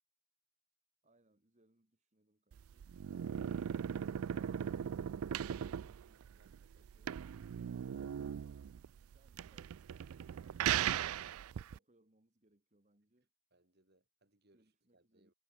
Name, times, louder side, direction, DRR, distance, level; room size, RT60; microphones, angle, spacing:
voice 1, 1.0-2.9 5.4-6.4 6.8-7.2 9.1-13.3 14.5-15.3, right 1 dB, 35° right, 1.9 m, -71 dB
sound 1, 2.5-11.8, right 9 dB, 80° right, 0.4 m, -38 dB
voice 2, 6.4-7.2 13.5-15.3, right 2 dB, 50° right, 3.8 m, -73 dB
head